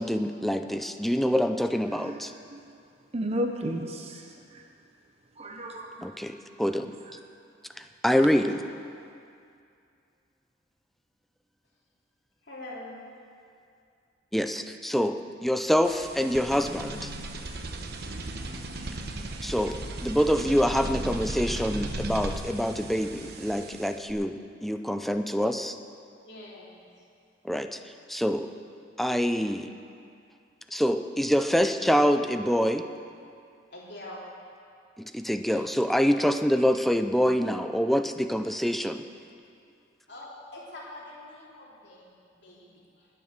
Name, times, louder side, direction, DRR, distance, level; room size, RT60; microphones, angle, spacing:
voice 1, 0.0-2.3 6.0-7.0 7.8-8.6 14.3-17.1 19.4-19.8 20.0-25.8 27.4-27.8 28.1-28.5 29.0-29.7 30.7-32.8 35.0-39.0, equal, ahead, 8 dB, 0.4 m, -26 dB
voice 2, 1.9-2.2 2.5-2.6 3.1-4.6 5.4-6.1, equal, 35° right, 3 dB, 0.8 m, -33 dB
voice 3, 12.4-13.0 26.2-26.8 33.7-34.3 35.5-35.6 40.1-43.1, left 1 dB, 60° left, -6 dB, 3.2 m, -44 dB
sound 1, 15.8-24.1, right 2 dB, 55° right, 1.0 m, -36 dB
20.0 x 7.0 x 6.6 m, 2.4 s
head